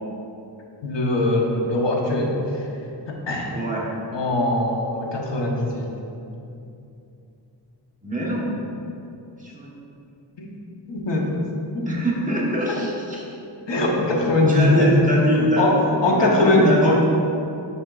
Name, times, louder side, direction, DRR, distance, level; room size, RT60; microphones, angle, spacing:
voice 1, 0.8-2.6 3.1-3.5 4.1-5.9 10.4-10.5 10.9-11.3 11.7-11.9 12.7-12.8 13.7-17.0, left 2 dB, 85° left, -1 dB, 1.0 m, -21 dB
voice 2, 3.5-3.8 8.0-8.5 9.4-9.7 11.8-13.2 14.5-15.7 16.2-17.0, right 1 dB, 20° right, -5 dB, 1.2 m, -24 dB
10.5 x 4.4 x 2.4 m, 2.7 s
wide cardioid pair, 135°, 42 cm